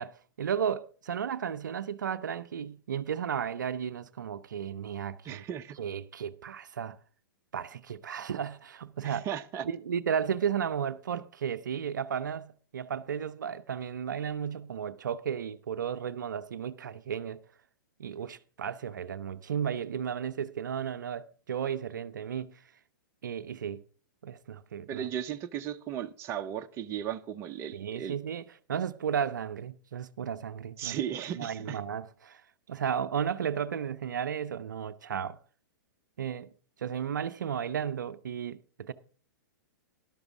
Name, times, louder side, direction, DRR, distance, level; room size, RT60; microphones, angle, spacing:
voice 1, 0.0-5.4 5.8-7.0 7.5-9.2 9.6-17.4 18.0-22.6 23.2-23.8 24.2-25.1 27.7-28.4 28.7-31.0 31.3-32.4 32.7-35.4 36.2-36.5 36.8-38.9, right 8 dB, 60° right, 0.6 m, -34 dB
voice 2, 5.2-5.8 9.0-9.7 24.9-28.2 30.8-31.8, right 10 dB, 25° right, 0.7 m, -36 dB
13.0 x 11.5 x 3.5 m
figure-of-eight pair, 110°, 11 cm